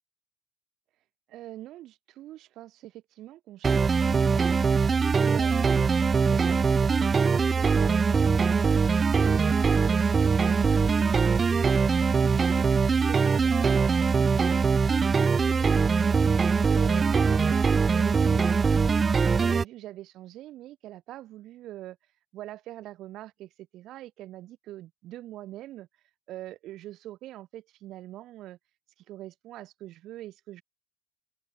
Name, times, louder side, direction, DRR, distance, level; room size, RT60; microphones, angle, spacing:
voice 1, 1.3-4.5 5.2-8.8 9.2-16.4 16.7-19.0 19.4-22.0 22.3-25.9 26.3-28.6 29.1-30.6, right 14 dB, 55° right, 7.0 m, -43 dB
sound 1, 3.6-19.6, right 5 dB, 20° right, 0.3 m, -22 dB
open air
cardioid pair, 155°, 0 cm